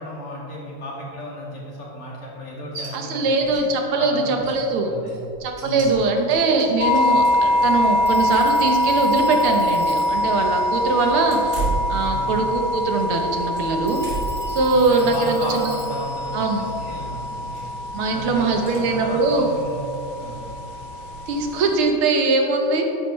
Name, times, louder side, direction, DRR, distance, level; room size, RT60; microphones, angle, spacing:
voice 1, 0.0-3.6 3.9-5.2 5.6-6.0 12.1-12.4 14.7-17.7 18.1-19.8 20.2-20.4, left 1 dB, 90° left, -4 dB, 3.1 m, -34 dB
sound 1, 2.7-2.9 3.2-3.6 3.9-4.0 4.4-7.5 8.1-9.4 9.7-9.8 11.2-12.6 12.9-14.5 15.0-15.3 16.6-17.0 17.5-17.9 18.7-18.8, right 3 dB, 55° right, 3.2 m, -34 dB
voice 2, 2.9-4.9 5.4-11.6 11.9-14.0 14.5-15.7 16.3-16.6 17.9-19.5 21.3-22.9, right 3 dB, 80° right, 3 dB, 1.9 m, -21 dB
sound 2, 6.8-21.8, left 1 dB, 65° left, 1.5 m, -24 dB
Telephone, 8.0-11.7 13.9-17.6, left 1 dB, 10° right, 0.7 m, -44 dB
12.5 x 9.0 x 3.2 m, 2.7 s
omnidirectional pair, 2.3 m